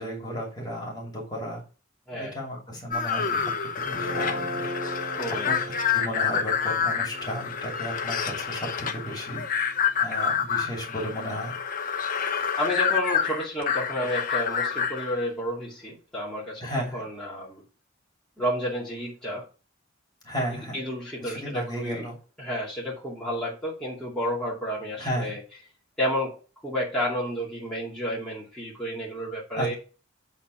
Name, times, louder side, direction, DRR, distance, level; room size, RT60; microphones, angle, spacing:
voice 1, 0.0-1.6 2.1-4.7 5.5-5.6 5.9-11.6 16.6-17.1 20.2-20.8 21.2-22.2 25.0-25.3 29.5-29.7, equal, 20° left, -1 dB, 2.7 m, -34 dB
sound 1, 2.9-15.1, left 7 dB, 40° left, 0.9 m, -28 dB
Guitar, 3.9-10.2, equal, 60° right, 3.6 m, -38 dB
voice 2, 5.2-5.5 12.6-17.6 18.4-19.5 20.5-22.1 22.4-25.4 26.0-26.3 26.6-29.7, equal, 5° left, -7 dB, 2.4 m, -31 dB
8.3 x 4.2 x 5.5 m, 0.35 s
head